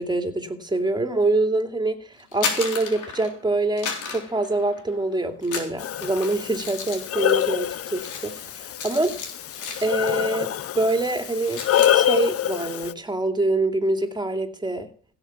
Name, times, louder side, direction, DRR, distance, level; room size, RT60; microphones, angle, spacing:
voice 1, 0.0-8.5 8.8-9.2 9.8-11.6 11.9-14.9, right 2 dB, 15° right, 2.6 m, -25 dB
sound 1, 2.2-3.4 3.8-5.0 5.4-10.3 10.6-10.9 11.2-12.0, left 5 dB, 80° left, 3.6 m, -34 dB
Breathing, 5.8-12.9, left 10 dB, 50° left, 0.6 m, -26 dB
16.5 x 6.7 x 7.2 m
cardioid pair, 90°, 30 cm